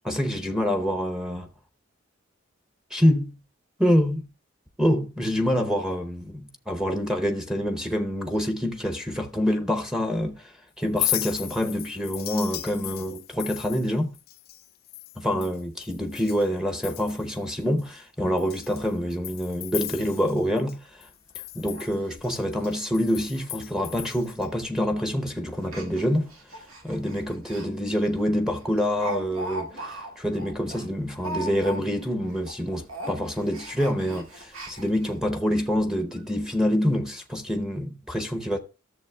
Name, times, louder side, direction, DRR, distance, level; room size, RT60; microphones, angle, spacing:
voice 1, 0.0-1.5 2.9-3.4 3.8-4.3 4.8-14.1 15.2-21.1 21.5-38.6, equal, 5° right, 0.7 m, -26 dB
Chink clink, 10.8-16.5 16.8-17.4 17.8-17.9 18.4-20.7 21.0-24.5, left 15 dB, 45° left, 0.5 m, -35 dB
Speech, 20.9-21.0 21.3-21.4 21.8-21.9 22.2-22.3 22.8-22.9 23.2-23.5 23.7-23.8 24.6-24.8 25.6-27.7 28.0-28.2 28.5-32.1 32.3-32.6 32.9-35.1 35.7-35.8 36.1-36.2, right 1 dB, 85° right, 2.0 m, -38 dB
13.5 x 7.0 x 2.2 m
head